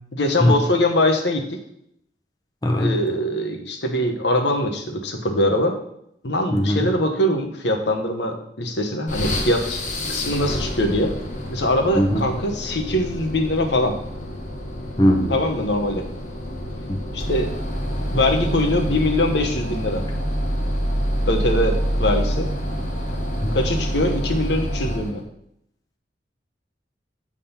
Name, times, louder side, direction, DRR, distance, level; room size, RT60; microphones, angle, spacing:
voice 1, 0.2-1.6 2.8-5.8 6.2-9.8 10.1-11.1 11.5-13.9 15.3-16.1 17.1-17.5 18.1-20.0 21.2-22.5 23.5-25.2, left 1 dB, 70° left, 4 dB, 1.0 m, -22 dB
voice 2, 2.6-3.0 6.5-6.8 12.0-12.2 15.0-15.3 16.9-17.0 23.4-23.5, equal, 20° left, 2 dB, 0.7 m, -19 dB
sound 1, 9.1-25.2, equal, 45° left, 1.2 m, -27 dB
8.3 x 3.7 x 5.7 m, 0.74 s
head